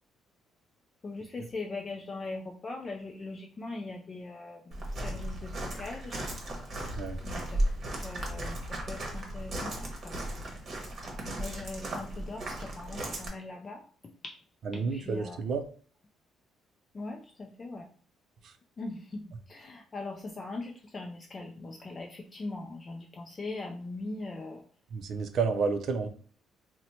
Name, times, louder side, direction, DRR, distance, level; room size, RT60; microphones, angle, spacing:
voice 1, 1.0-6.3 7.2-10.2 11.4-14.4 14.7-15.4 16.9-17.9 18.8-24.6, left 3 dB, 30° left, 2 dB, 0.3 m, -41 dB
Walk footsteps, 4.7-13.3, right 1 dB, 40° right, 0.9 m, -35 dB
voice 2, 14.7-15.6 18.4-18.5 24.9-26.1, right 5 dB, 60° right, 7 dB, 0.5 m, -30 dB
2.8 x 2.1 x 4.0 m, 0.44 s
cardioid pair, 125°, 0 cm